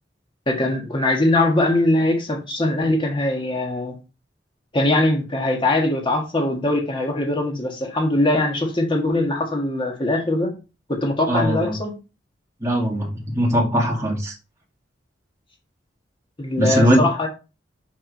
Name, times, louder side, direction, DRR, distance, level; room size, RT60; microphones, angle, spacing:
voice 1, 0.5-3.9 4.7-10.5 10.9-12.0 16.4-17.3, left 1 dB, 30° left, 1.6 m, -21 dB
voice 2, 11.3-11.7 12.6-13.1 13.3-14.3 16.6-17.0, equal, 15° right, 2.2 m, -19 dB
6.0 x 4.7 x 4.3 m
head